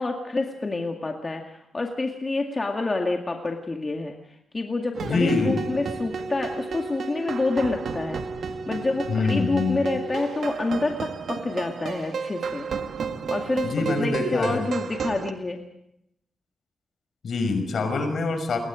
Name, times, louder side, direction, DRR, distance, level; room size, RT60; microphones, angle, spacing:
voice 1, 0.0-8.2 8.7-12.7 13.3-15.6, left 3 dB, 25° left, 2 dB, 2.1 m, -28 dB
sound 1, 4.9-15.3, right 5 dB, 65° right, 1.9 m, -32 dB
voice 2, 5.0-5.7 9.1-9.8 13.6-14.7 17.2-18.6, left 3 dB, 60° left, 7 dB, 5.7 m, -25 dB
29.0 x 21.5 x 5.1 m, 0.79 s
wide cardioid pair, 125°, 0 cm